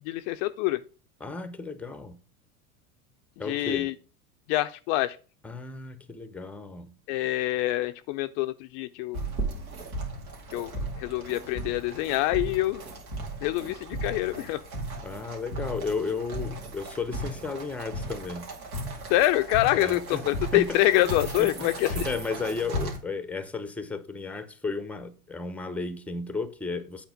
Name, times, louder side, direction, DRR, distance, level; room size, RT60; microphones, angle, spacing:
voice 1, 0.1-0.8 3.5-3.9 4.5-5.2 7.1-9.2 10.5-10.7 11.0-12.8 13.4-14.6 19.1-22.1, left 16 dB, 45° left, 0.5 m, -26 dB
voice 2, 1.2-2.2 3.4-3.9 5.4-6.9 15.0-18.5 19.7-20.8 21.0-27.1, left 4 dB, 5° left, 0.7 m, -34 dB
sound 1, 9.1-23.0, right 1 dB, 75° right, 2.4 m, -36 dB
8.0 x 4.4 x 4.9 m
hypercardioid pair, 90°, 44 cm